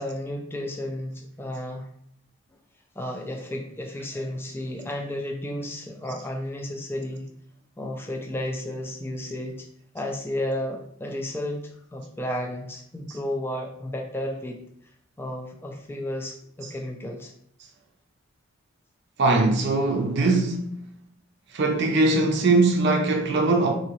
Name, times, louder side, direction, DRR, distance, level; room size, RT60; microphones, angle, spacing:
voice 1, 0.0-1.9 3.0-7.2 7.8-9.7 9.9-11.6 11.9-14.6 15.2-17.3, left 1 dB, 10° left, 0.3 m, -32 dB
voice 2, 19.2-20.8 21.5-23.7, right 3 dB, 50° right, 0.5 m, -21 dB
3.8 x 2.7 x 2.9 m
head